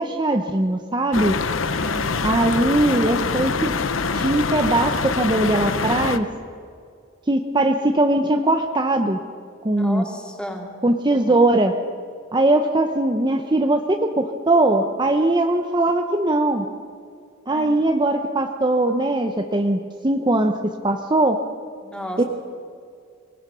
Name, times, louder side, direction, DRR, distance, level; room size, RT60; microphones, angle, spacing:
voice 1, 0.0-1.4 2.2-3.7 4.1-6.3 7.3-9.2 9.6-10.0 10.8-11.7 12.3-16.7 17.5-20.6 20.8-21.4 22.2-22.3, right 2 dB, 25° right, 5 dB, 0.9 m, -20 dB
sound 1, 1.1-6.2, left 4 dB, 80° left, 1.0 m, -24 dB
voice 2, 1.6-2.2 9.7-10.8 17.5-17.7 21.8-22.2, equal, 5° left, 1 dB, 2.8 m, -33 dB
25.5 x 20.0 x 6.3 m, 2.3 s
head